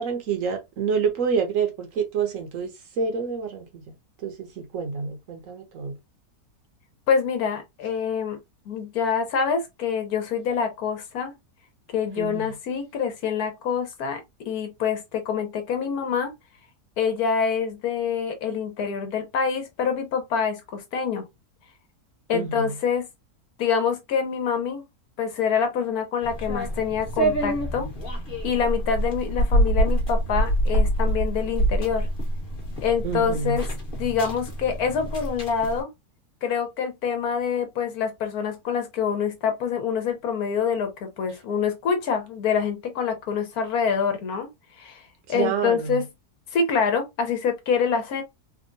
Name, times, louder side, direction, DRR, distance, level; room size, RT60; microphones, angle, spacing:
voice 1, 0.0-3.7 4.2-6.0 12.2-12.5 22.3-22.7 33.0-33.6 45.3-46.0, right 6 dB, 65° right, 1.0 m, -28 dB
voice 2, 7.1-8.4 8.7-11.3 11.9-16.3 17.0-21.2 22.3-23.1 23.6-24.8 25.2-27.9 28.4-32.1 32.8-33.7 34.0-35.9 36.4-44.5 44.8-46.0 46.5-48.2, left 6 dB, 80° left, 1.3 m, -26 dB
sound 1, 26.2-35.8, right 1 dB, 40° left, 1.1 m, -26 dB
3.5 x 2.2 x 2.6 m
omnidirectional pair, 1.6 m